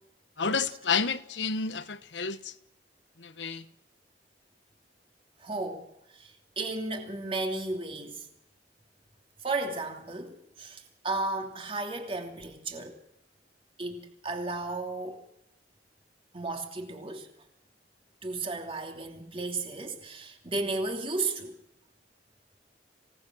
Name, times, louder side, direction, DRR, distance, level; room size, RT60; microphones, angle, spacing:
voice 1, 0.4-2.5 3.2-3.6, left 5 dB, 90° left, 1.1 m, -30 dB
voice 2, 5.4-5.9 6.1-8.2 9.4-13.0 13.8-15.2 16.3-17.3 18.2-21.6, right 3 dB, 30° right, 2.8 m, -34 dB
26.5 x 18.0 x 6.4 m
head